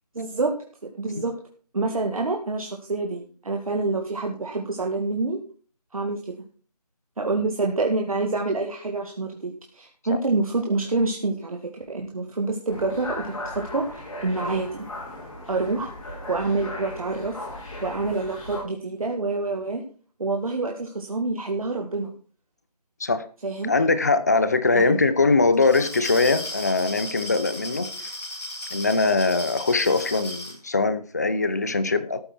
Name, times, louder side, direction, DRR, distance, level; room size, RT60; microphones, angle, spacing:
voice 1, 0.1-0.5 0.9-1.3 1.7-5.4 5.9-6.3 7.2-14.9 15.5-15.9 16.3-17.3 17.8-19.8 20.2-22.1 23.4-23.7 24.7-25.0, right 3 dB, 60° right, 1 dB, 2.0 m, -27 dB
sound 1, 12.7-18.6, left 1 dB, 55° left, 5.7 m, -37 dB
voice 2, 23.7-28.1 28.7-32.2, left 3 dB, 25° left, 14 dB, 0.7 m, -22 dB
Glass, 25.5-30.6, left 1 dB, 80° left, 7.4 m, -35 dB
13.5 x 8.0 x 4.5 m, 0.40 s
figure-of-eight pair, 170°, 21 cm